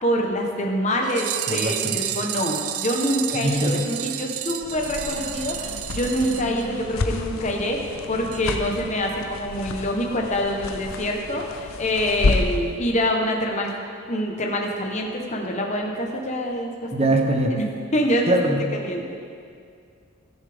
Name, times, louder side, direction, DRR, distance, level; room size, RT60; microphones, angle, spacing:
voice 1, 0.0-13.8 14.1-17.1 17.5-17.7 17.9-18.5 18.8-19.2, equal, 35° left, 1 dB, 1.0 m, -25 dB
sound 1, 1.0-7.2 7.5-7.6 7.8-7.9 8.3-8.4 8.7-8.8, right 12 dB, 85° right, 0.5 m, -31 dB
voice 2, 1.5-2.0 3.4-3.8 16.9-17.6 18.3-18.7, right 1 dB, 30° right, 3 dB, 0.9 m, -22 dB
sound 2, 4.6-12.7, left 3 dB, 75° left, 0.6 m, -30 dB
17.0 x 6.9 x 3.5 m, 2.3 s
head